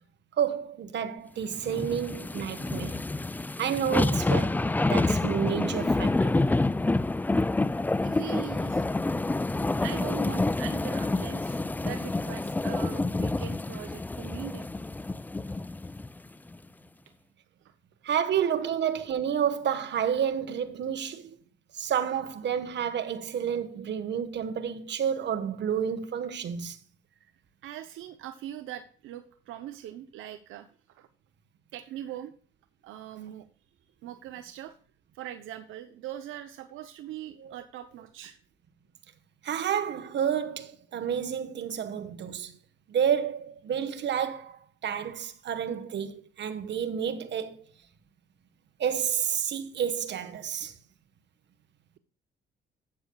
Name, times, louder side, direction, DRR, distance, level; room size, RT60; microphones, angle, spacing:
voice 1, 0.4-3.0 3.6-6.3 18.0-21.4 21.7-26.8 37.4-37.6 39.4-42.6 42.9-47.6 48.8-50.7, right 8 dB, 65° right, 1.3 m, -30 dB
sound 1, 1.6-16.1 16.5-16.6, left 2 dB, 10° left, 0.3 m, -28 dB
voice 2, 8.0-8.9 9.8-14.7 17.6-17.8 18.0-18.2 27.6-30.7 31.0-31.1 31.7-32.3 32.8-33.5 34.0-34.8 35.1-38.4, right 12 dB, 90° right, 0.8 m, -41 dB
12.5 x 8.5 x 2.3 m
cardioid pair, 90°, 20 cm